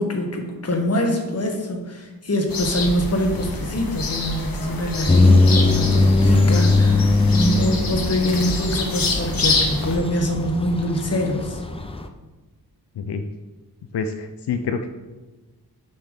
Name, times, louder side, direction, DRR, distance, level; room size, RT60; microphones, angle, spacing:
voice 1, 0.0-11.6, equal, 40° left, 2 dB, 1.4 m, -24 dB
sound 1, 2.5-10.0, left 2 dB, 60° left, 1.4 m, -26 dB
sound 2, 5.1-12.1, left 2 dB, 15° left, 0.5 m, -20 dB
voice 2, 13.0-13.3 13.9-14.9, left 5 dB, 85° left, 6 dB, 0.6 m, -27 dB
7.0 x 5.7 x 6.5 m, 1.2 s
wide cardioid pair, 145°, 39 cm